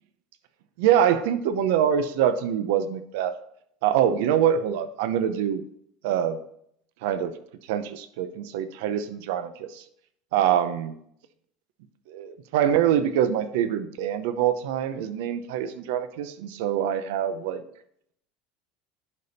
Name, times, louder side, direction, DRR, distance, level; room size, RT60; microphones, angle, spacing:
voice 1, 0.8-3.3 3.8-5.6 6.0-6.4 7.0-7.3 7.7-9.8 10.3-10.9 12.1-17.6, right 9 dB, 75° right, 11 dB, 0.7 m, -24 dB
11.0 x 5.2 x 4.2 m, 0.70 s
cardioid pair, 160°, 0 cm